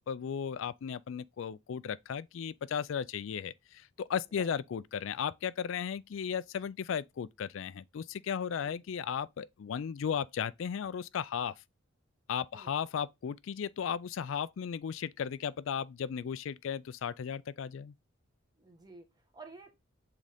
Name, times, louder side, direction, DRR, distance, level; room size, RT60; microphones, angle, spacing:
voice 1, 0.1-11.5 12.3-17.9, left 7 dB, 65° left, 0.3 m, -35 dB
voice 2, 8.4-8.8 12.5-12.8 18.6-19.8, right 3 dB, 20° right, 1.2 m, -53 dB
7.4 x 3.8 x 3.4 m
head